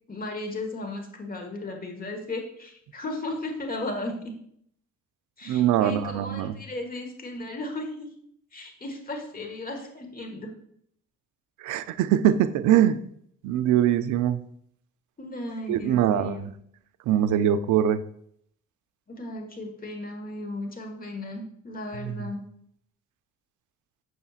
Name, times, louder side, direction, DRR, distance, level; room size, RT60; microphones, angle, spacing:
voice 1, 0.1-4.4 5.4-8.1 8.5-10.5 15.2-16.5 19.1-22.4, left 2 dB, 30° left, 4 dB, 1.3 m, -35 dB
voice 2, 5.5-6.5 11.6-13.0 13.4-14.4 15.7-16.4 17.1-18.0 22.0-22.3, right 10 dB, 80° right, 12 dB, 0.5 m, -22 dB
7.0 x 6.2 x 2.4 m, 0.68 s
cardioid pair, 90°, 30 cm